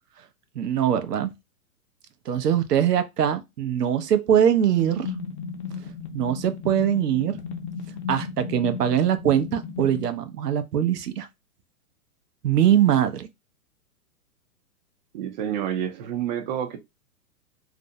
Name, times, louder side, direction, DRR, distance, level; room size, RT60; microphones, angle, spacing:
voice 1, 0.6-1.3 2.3-5.1 6.1-7.4 8.1-11.3 12.4-13.3, right 9 dB, 90° right, 0.6 m, -22 dB
sound 1, 4.8-10.0, left 6 dB, 45° left, 0.6 m, -35 dB
voice 2, 15.1-16.8, right 10 dB, 30° right, 0.4 m, -29 dB
2.5 x 2.1 x 2.6 m
hypercardioid pair, 125°, 46 cm